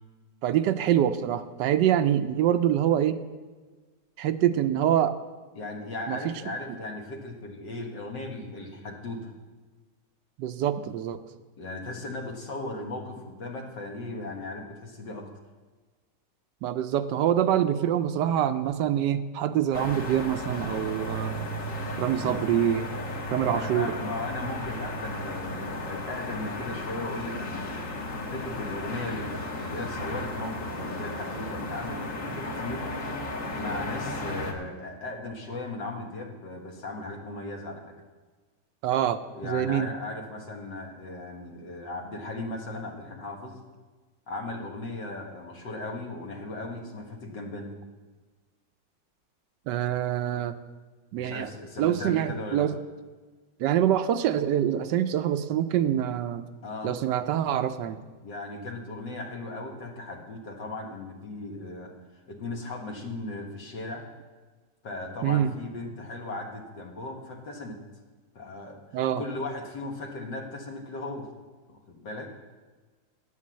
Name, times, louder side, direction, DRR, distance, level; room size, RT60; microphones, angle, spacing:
voice 1, 0.4-3.2 4.2-5.1 6.1-6.2 10.4-11.2 16.6-21.5 22.0-22.9 23.3-23.9 38.8-39.9 49.7-50.5 51.1-51.5 51.8-52.8 53.6-56.4 56.8-58.0 65.2-65.5 68.9-69.2, right 10 dB, 80° right, 11 dB, 1.2 m, -25 dB
voice 2, 5.6-9.3 11.6-15.3 22.2-22.5 23.5-27.9 28.3-32.9 33.5-37.9 39.3-43.6 44.3-47.7 51.2-52.7 56.6-57.0 58.2-61.9 62.3-64.1 64.8-67.8 68.4-71.3 71.7-72.3, left 2 dB, 75° left, 2 dB, 2.1 m, -37 dB
sound 1, 19.7-34.5, left 1 dB, 50° left, 1.7 m, -34 dB
9.5 x 8.5 x 7.4 m, 1.4 s
omnidirectional pair, 1.9 m